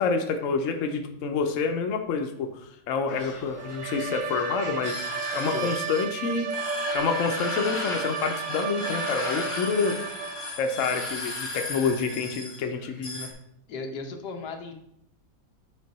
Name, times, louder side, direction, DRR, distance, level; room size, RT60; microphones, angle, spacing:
voice 1, 0.0-5.0 5.3-6.6 6.9-10.1 10.6-13.3, left 5 dB, 60° left, 5 dB, 0.9 m, -28 dB
sound 1, 3.1-13.3, left 2 dB, 30° left, 0.6 m, -36 dB
Bowed string instrument, 3.5-10.6, right 6 dB, 70° right, 0.8 m, -33 dB
voice 2, 5.3-5.7 13.7-14.7, left 3 dB, 90° left, 4 dB, 1.5 m, -36 dB
6.6 x 4.2 x 4.1 m, 0.75 s
omnidirectional pair, 1.8 m